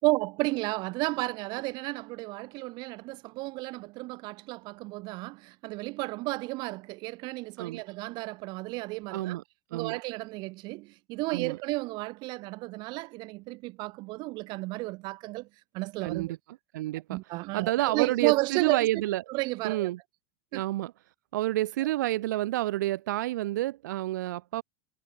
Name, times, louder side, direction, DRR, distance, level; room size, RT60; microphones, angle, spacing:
voice 1, 0.0-9.4 9.7-15.5 15.7-16.4 17.1-18.9 19.3-19.9 20.5-20.6, right 23 dB, 50° right, 5.8 m, -32 dB
voice 2, 9.1-9.4 9.7-10.0 11.3-11.6 16.0-16.4 16.7-17.2 17.5-19.2 19.6-20.0 20.5-20.9 21.3-24.6, right 16 dB, 85° right, 1.1 m, -29 dB
supercardioid pair, 135°, 10 cm